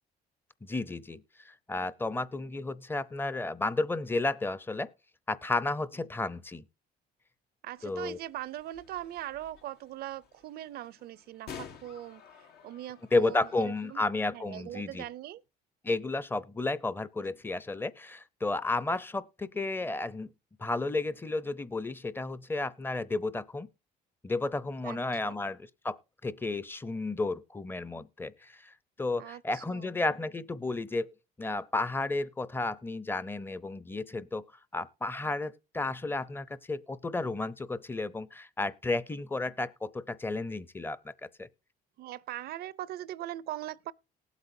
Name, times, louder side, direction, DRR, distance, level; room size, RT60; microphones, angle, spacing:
voice 1, 0.6-4.9 5.3-6.6 7.8-8.2 13.1-15.0 15.8-20.3 20.6-23.7 24.2-34.4 34.7-41.1 41.4-41.5, left 2 dB, 15° left, 0.6 m, -32 dB
voice 2, 7.6-14.0 14.3-15.4 24.8-25.4 29.2-29.9 42.0-43.9, right 13 dB, 65° right, 0.5 m, -41 dB
sound 1, 7.8-14.0, left 7 dB, 75° left, 1.2 m, -51 dB
19.0 x 8.2 x 2.6 m
cardioid pair, 110°, 17 cm